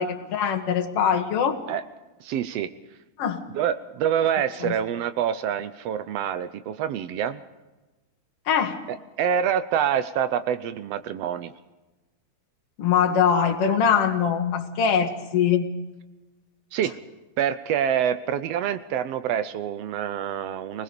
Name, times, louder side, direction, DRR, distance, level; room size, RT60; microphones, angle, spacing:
voice 1, 0.0-1.6 3.2-3.4 4.6-4.7 8.5-8.8 12.8-15.7, left 7 dB, 50° left, 5 dB, 2.5 m, -22 dB
voice 2, 2.2-2.7 3.5-7.4 8.9-11.5 16.7-16.9 17.4-20.8, right 9 dB, 90° right, 11 dB, 1.4 m, -26 dB
25.0 x 20.5 x 5.2 m, 1.1 s
omnidirectional pair, 3.9 m